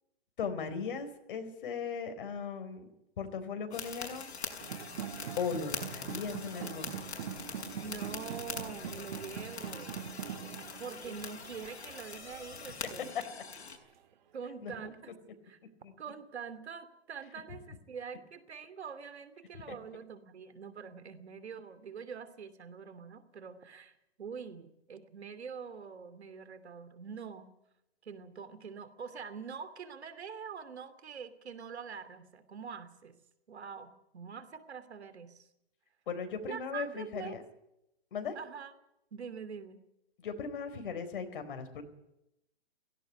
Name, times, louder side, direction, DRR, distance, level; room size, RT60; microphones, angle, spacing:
voice 1, 0.4-2.9 3.2-4.3 5.4-6.9 13.1-13.2 14.6-14.7 15.8-15.9 19.7-19.8 36.1-37.4 38.1-38.4 40.2-41.8, left 6 dB, 50° left, 8 dB, 4.2 m, -37 dB
sound 1, 3.7-13.8, left 5 dB, 75° left, 6.1 m, -43 dB
sound 2, 4.6-13.5, right 9 dB, 45° right, 1.9 m, -44 dB
voice 2, 7.7-10.1 10.8-13.1 14.3-15.1 15.4-15.6 16.0-27.5 28.0-33.1 33.5-35.5 36.5-37.4 38.3-38.7 39.1-39.8, right 6 dB, 75° right, 13 dB, 2.8 m, -45 dB
17.0 x 17.0 x 9.4 m, 0.85 s
hypercardioid pair, 155°, 33 cm